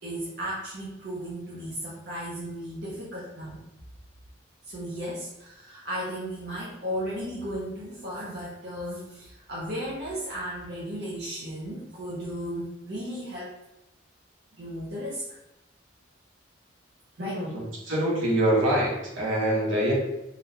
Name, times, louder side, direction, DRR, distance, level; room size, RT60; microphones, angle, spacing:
voice 1, 0.0-3.6 4.6-13.5 14.6-15.4 17.2-17.4, equal, 55° right, -6 dB, 0.6 m, -35 dB
voice 2, 17.2-19.9, right 1 dB, 80° right, -4 dB, 1.1 m, -25 dB
3.8 x 2.3 x 2.7 m, 0.89 s
head